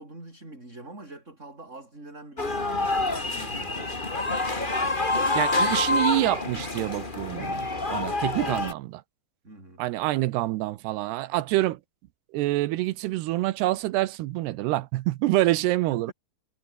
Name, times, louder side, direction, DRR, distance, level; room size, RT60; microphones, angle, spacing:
voice 1, 0.0-3.9 9.4-9.8 15.9-16.1, right 2 dB, 15° right, 7.3 m, -45 dB
sound 1, 2.4-8.7, left 2 dB, 20° left, 1.5 m, -27 dB
voice 2, 5.3-9.0 9.8-11.8 12.3-16.1, right 17 dB, 75° right, 2.6 m, -26 dB
omnidirectional pair, 5.4 m